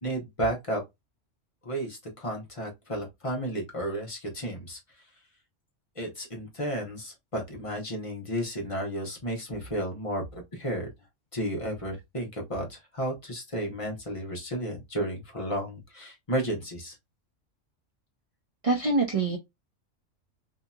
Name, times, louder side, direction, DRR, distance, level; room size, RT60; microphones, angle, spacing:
voice 1, 0.0-0.8 1.6-4.8 6.0-10.9 11.3-17.0, right 1 dB, 30° left, 0.9 m, -33 dB
voice 2, 18.6-19.4, right 3 dB, 55° right, 0.3 m, -24 dB
2.8 x 2.8 x 2.2 m
omnidirectional pair, 1.3 m